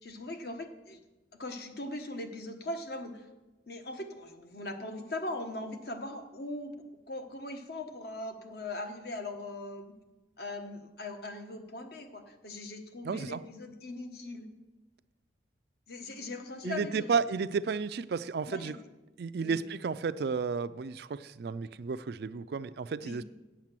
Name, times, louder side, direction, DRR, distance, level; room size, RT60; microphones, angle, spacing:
voice 1, 0.0-1.0 1.4-3.3 3.7-6.7 7.1-9.9 10.4-14.5 15.9-17.1 18.4-18.7 19.4-19.6 23.0-23.2, left 2 dB, 55° left, 6 dB, 1.1 m, -40 dB
voice 2, 13.0-13.4 16.6-18.8 19.2-23.3, right 5 dB, 55° right, 14 dB, 0.3 m, -32 dB
8.8 x 7.4 x 7.5 m, 1.1 s
head